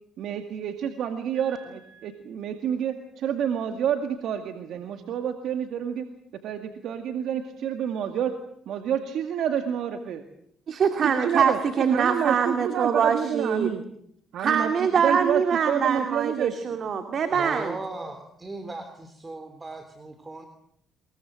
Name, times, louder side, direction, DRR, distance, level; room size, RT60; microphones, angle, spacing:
voice 1, 0.2-6.1 6.4-8.4 8.7-10.2 11.0-13.8 14.3-14.7 15.0-15.4 15.7-16.5, right 9 dB, 70° right, 6 dB, 2.1 m, -28 dB
voice 2, 1.4-2.1 10.7-13.7 14.4-17.8, right 6 dB, 55° right, 6 dB, 2.3 m, -24 dB
voice 3, 17.3-20.5, right 2 dB, 25° right, 7 dB, 3.5 m, -37 dB
23.0 x 22.0 x 7.7 m, 0.71 s
supercardioid pair, 70°, 0 cm